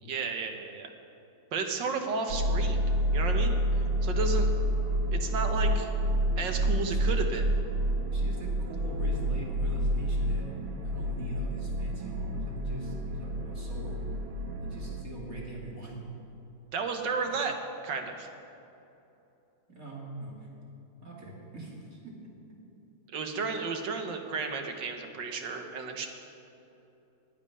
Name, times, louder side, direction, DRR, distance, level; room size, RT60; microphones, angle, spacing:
voice 1, 0.0-0.9 1.5-2.8 3.1-3.6 4.0-4.5 5.1-5.9 6.4-7.5 16.7-17.6 17.8-18.3 23.1-26.1, right 5 dB, 65° right, 5 dB, 1.8 m, -33 dB
sound 1, 2.3-15.0, equal, 90° right, 1.8 m, -29 dB
voice 2, 6.6-7.0 8.1-10.4 10.8-14.0 14.6-15.9 17.2-17.3 19.7-20.5 21.0-22.3, right 1 dB, 45° right, -3 dB, 3.1 m, -42 dB
11.0 x 9.0 x 9.8 m, 2.9 s
omnidirectional pair, 2.1 m